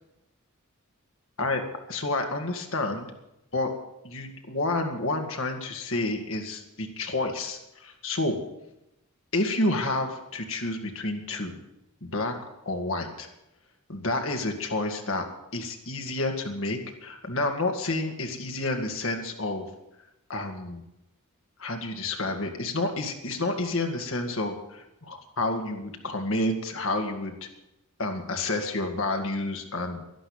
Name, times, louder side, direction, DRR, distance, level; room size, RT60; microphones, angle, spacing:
voice 1, 1.9-3.1 3.5-3.7 4.0-8.4 9.3-11.6 12.0-12.4 12.7-13.3 13.9-15.2 15.5-19.7 20.3-20.8 21.6-27.5 28.0-30.0, left 2 dB, 60° left, 3 dB, 2.2 m, -29 dB
11.5 x 11.5 x 8.9 m, 0.88 s
head